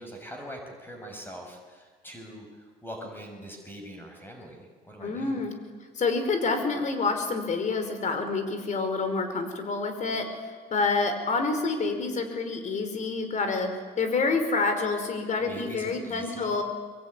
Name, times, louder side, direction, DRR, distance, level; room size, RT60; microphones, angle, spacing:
voice 1, 0.0-2.5 2.8-5.4 15.5-16.5, equal, 10° left, 2 dB, 6.3 m, -42 dB
voice 2, 5.0-5.5 6.0-16.6, left 4 dB, 45° left, 7 dB, 5.2 m, -28 dB
24.0 x 23.0 x 9.9 m, 1.5 s
cardioid pair, 110°, 17 cm